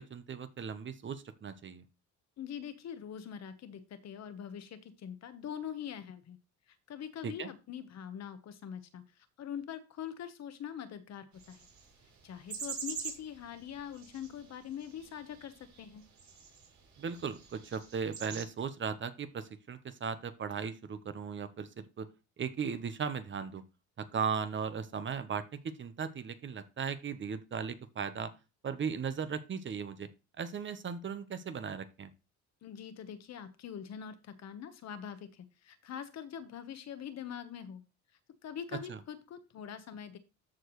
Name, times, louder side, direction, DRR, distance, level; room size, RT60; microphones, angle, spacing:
voice 1, 0.0-1.8 7.2-7.5 17.0-22.1 22.4-23.6 24.0-28.3 28.6-30.1 30.4-32.1 38.9-39.0, right 6 dB, 35° right, 11 dB, 0.9 m, -37 dB
voice 2, 2.4-6.4 6.9-11.6 12.2-16.0 32.6-37.8 38.4-40.2, left 8 dB, 55° left, 11 dB, 1.2 m, -43 dB
sound 1, 11.4-18.4, right 6 dB, 60° right, 3.9 m, -46 dB
13.5 x 4.6 x 3.1 m, 0.28 s
cardioid pair, 100°, 32 cm